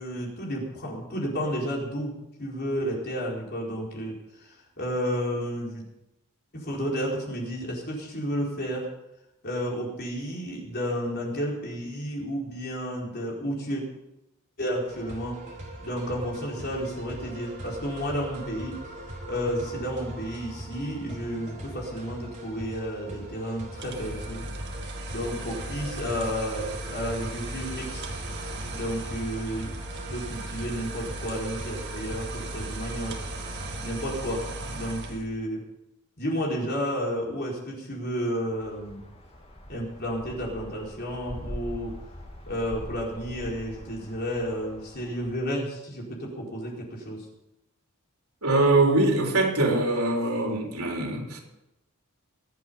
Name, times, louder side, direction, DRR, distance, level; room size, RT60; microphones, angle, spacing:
voice 1, 0.0-5.9 6.5-8.9 9.4-13.8 14.6-15.4 15.8-18.8 19.3-24.5 25.1-28.0 28.7-29.8 30.1-33.2 33.8-35.7 36.2-39.0 39.7-42.0 42.5-47.3, equal, 45° left, -2 dB, 4.4 m, -32 dB
sound 1, 14.9-33.8, right 1 dB, 35° right, 4.7 m, -41 dB
sound 2, 23.7-35.3, right 2 dB, 55° right, 2.0 m, -37 dB
sound 3, 38.6-45.4, equal, 30° left, 2.4 m, -43 dB
voice 2, 48.4-51.4, right 2 dB, 90° right, 1 dB, 3.8 m, -23 dB
24.0 x 8.4 x 5.6 m, 0.90 s
head